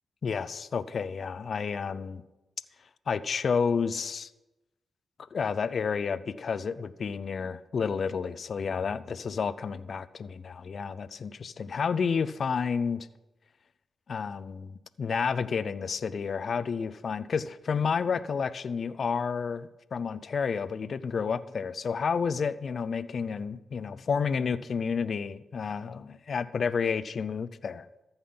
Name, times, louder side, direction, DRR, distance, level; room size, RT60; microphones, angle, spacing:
voice 1, 0.2-2.2 3.1-4.3 5.3-13.1 14.1-27.9, left 6 dB, 60° left, 15 dB, 0.5 m, -30 dB
14.0 x 5.6 x 5.7 m, 1.0 s
cardioid pair, 60°, 0 cm